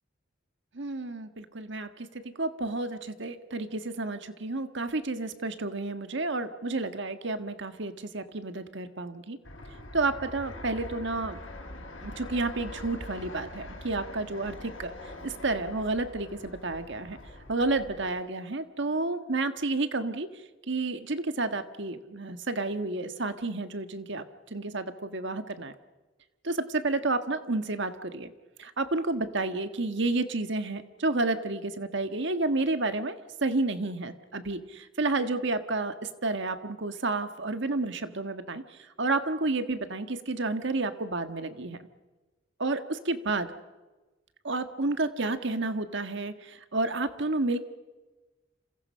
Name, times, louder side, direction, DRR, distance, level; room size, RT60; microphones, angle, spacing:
voice 1, 0.7-9.4 9.9-11.4 12.0-17.2 17.5-20.3 20.7-24.2 24.5-25.7 26.4-28.3 28.6-41.8 42.6-43.5 44.4-47.6, right 2 dB, 65° right, 9 dB, 1.6 m, -31 dB
Fixed-wing aircraft airplane, 9.4-18.1, left 1 dB, 80° left, 5.3 m, -43 dB
30.0 x 27.0 x 5.7 m, 1.2 s
head